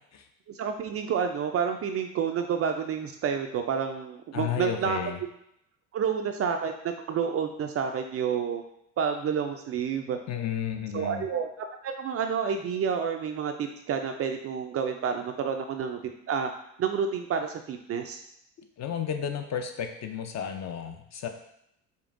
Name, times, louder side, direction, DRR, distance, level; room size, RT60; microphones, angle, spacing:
voice 1, 0.5-5.0 5.9-8.6 9.0-10.2 10.9-11.5 11.8-16.0 16.3-16.5 16.8-18.2, right 7 dB, 35° right, 5 dB, 0.4 m, -29 dB
voice 2, 4.3-5.2 10.3-11.3 18.6-21.3, left 8 dB, 40° left, 5 dB, 0.5 m, -33 dB
5.1 x 2.3 x 2.5 m, 0.77 s
hypercardioid pair, 75°, 42 cm